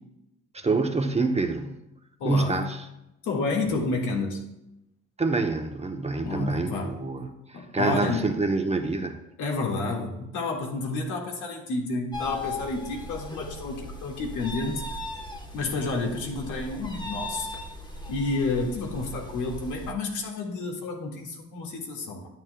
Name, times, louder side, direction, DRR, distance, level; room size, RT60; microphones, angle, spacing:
voice 1, 0.5-1.8 2.2-2.8 5.2-9.2, right 3 dB, 20° right, 5 dB, 0.8 m, -26 dB
voice 2, 2.2-2.6 3.2-4.4 6.2-7.0 7.5-8.3 9.4-14.8 15.5-17.5 18.1-22.3, left 3 dB, 90° left, 0 dB, 1.9 m, -30 dB
sound 1, 12.1-19.9, left 2 dB, 15° left, 1.1 m, -38 dB
11.0 x 9.7 x 2.3 m, 0.88 s
cardioid pair, 90°, 30 cm